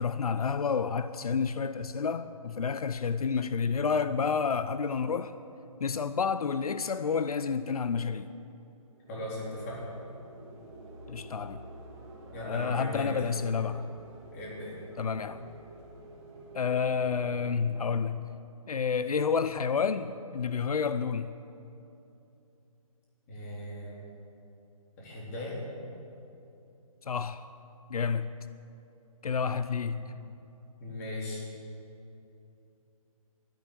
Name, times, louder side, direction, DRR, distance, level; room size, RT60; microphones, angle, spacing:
voice 1, 0.0-5.3 5.8-8.3 11.1-11.6 12.4-13.9 15.0-15.5 16.5-18.3 18.7-21.3 27.1-27.4 27.9-28.4 29.2-30.0, left 6 dB, 90° left, 0.6 m, -30 dB
sound 1, 8.9-18.2, right 1 dB, 15° right, 2.3 m, -50 dB
voice 2, 9.1-9.9 12.3-13.2 14.3-14.8 23.3-24.0 25.0-25.6 29.9-30.1 30.8-31.4, left 1 dB, 25° left, 3.8 m, -38 dB
12.0 x 10.5 x 10.0 m
hypercardioid pair, 165°, 18 cm